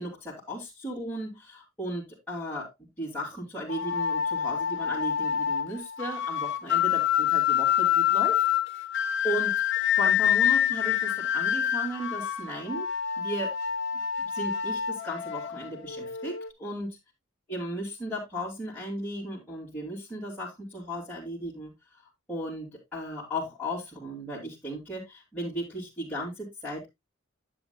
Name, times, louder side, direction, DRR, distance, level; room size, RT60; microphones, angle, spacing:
voice 1, 0.0-2.7 3.0-8.5 9.2-9.6 9.9-12.9 13.2-13.5 14.2-17.0 17.5-21.7 22.3-26.9, equal, 10° left, -8 dB, 2.8 m, -36 dB
sound 1, 3.7-16.5, left 9 dB, 60° left, 0.8 m, -27 dB
10.5 x 8.4 x 2.3 m, 0.19 s
head